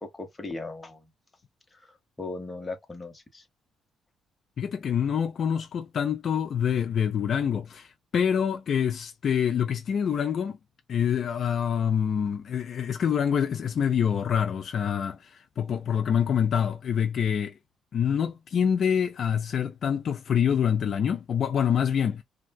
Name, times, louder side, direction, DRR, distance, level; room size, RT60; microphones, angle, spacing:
voice 1, 0.0-1.1 1.7-3.4, left 3 dB, 20° left, 1.0 m, -38 dB
voice 2, 4.6-10.6 10.9-17.5 17.9-22.2, left 8 dB, 55° left, 0.4 m, -26 dB
3.3 x 2.3 x 2.3 m
cardioid pair, 90°, 0 cm